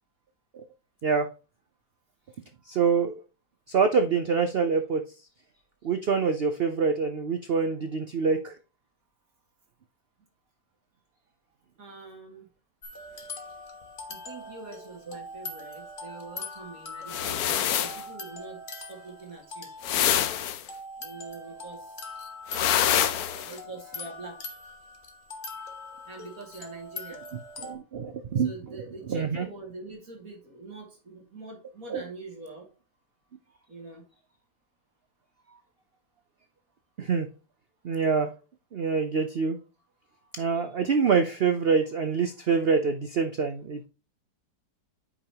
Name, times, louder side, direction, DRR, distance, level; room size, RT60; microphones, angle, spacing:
voice 1, 2.7-3.2 3.7-5.0 5.8-8.6 15.1-15.2 27.6-28.5 29.1-29.5 31.9-32.1 37.0-37.3 37.8-38.3 38.7-39.6 40.3-43.9, right 5 dB, 70° right, 8 dB, 0.5 m, -25 dB
voice 2, 11.8-12.5 14.1-19.7 21.0-22.0 23.3-24.4 26.1-27.2 28.4-32.7 33.7-34.0, right 3 dB, 50° right, 1 dB, 2.6 m, -44 dB
sound 1, 12.8-27.8, left 2 dB, 35° left, 1.1 m, -42 dB
sound 2, 17.1-18.0 19.8-20.6 22.5-23.5, left 10 dB, 65° left, 1.0 m, -25 dB
8.6 x 5.2 x 2.9 m, 0.33 s
omnidirectional pair, 1.9 m